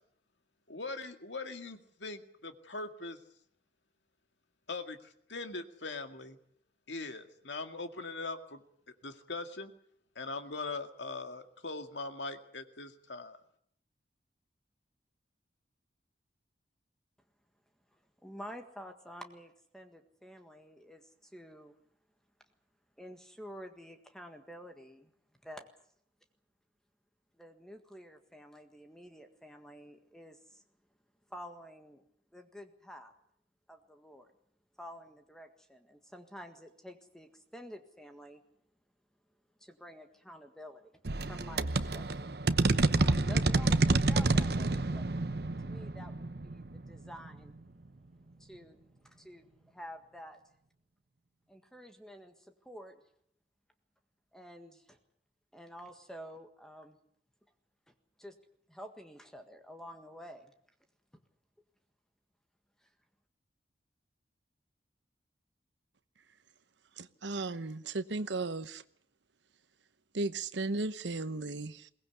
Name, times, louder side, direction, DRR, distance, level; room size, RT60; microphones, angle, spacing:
voice 1, 0.7-3.2 4.7-6.4 6.9-8.6 9.0-9.7 10.2-13.4, left 3 dB, 85° left, 7 dB, 2.0 m, -41 dB
voice 2, 18.2-21.7 23.0-25.1 25.4-25.7 27.4-30.6 31.3-32.0 32.3-33.1 33.7-34.3 34.8-38.4 39.6-40.9 41.3-42.3 43.0-45.1 45.6-47.6 48.4-48.8 49.1-50.4 51.5-53.0 54.3-55.0 55.5-57.0 57.9-58.3 58.7-60.5 62.8-62.9, equal, 5° left, 6 dB, 1.7 m, -50 dB
sound 1, 41.0-47.5, right 2 dB, 60° right, 0.9 m, -29 dB
voice 3, 67.0-68.8 70.1-71.9, right 3 dB, 80° right, 13 dB, 1.0 m, -35 dB
22.5 x 18.5 x 8.3 m, 0.66 s
head